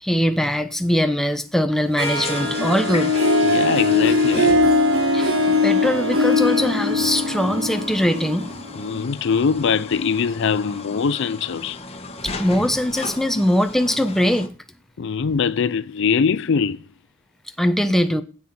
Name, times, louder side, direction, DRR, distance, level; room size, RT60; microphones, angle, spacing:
voice 1, 0.0-3.1 5.1-5.3 5.6-8.5 12.2-14.5 17.6-18.2, equal, ahead, 0.9 m, -21 dB
sound 1, 2.0-14.5, left 3 dB, 30° left, 1.4 m, -35 dB
Harp, 2.0-8.9, left 2 dB, 85° right, 3.1 m, -20 dB
voice 2, 3.4-4.5 8.8-11.8 15.0-16.8, left 6 dB, 60° left, 0.5 m, -22 dB
15.5 x 8.6 x 4.3 m
head